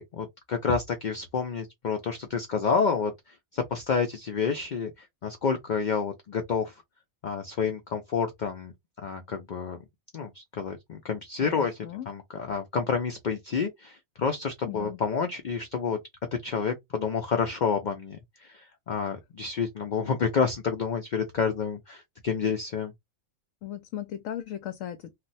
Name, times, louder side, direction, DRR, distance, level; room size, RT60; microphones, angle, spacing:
voice 1, 0.0-3.1 3.5-6.7 7.2-8.7 9.0-9.8 10.1-16.0 16.4-22.9, left 5 dB, 60° left, 0.5 m, -29 dB
voice 2, 11.4-12.1 14.7-15.0 23.6-25.1, left 11 dB, 75° left, 0.9 m, -37 dB
2.4 x 2.1 x 3.9 m
omnidirectional pair, 1.4 m